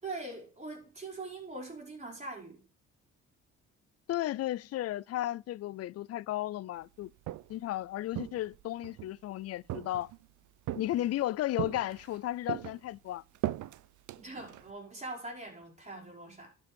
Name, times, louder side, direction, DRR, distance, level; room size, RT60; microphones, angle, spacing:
voice 1, 0.0-2.6 14.2-16.5, right 2 dB, 25° right, 5.1 m, -42 dB
voice 2, 4.1-7.1 7.5-10.1 10.7-13.2, left 14 dB, 55° left, 0.4 m, -34 dB
Walk footsteps, 7.0-7.7 8.1-9.1 9.7-10.3 10.7-11.2 11.6-12.2 12.5-14.7, right 15 dB, 75° right, 0.6 m, -38 dB
11.0 x 5.3 x 5.2 m
cardioid pair, 90°, 30 cm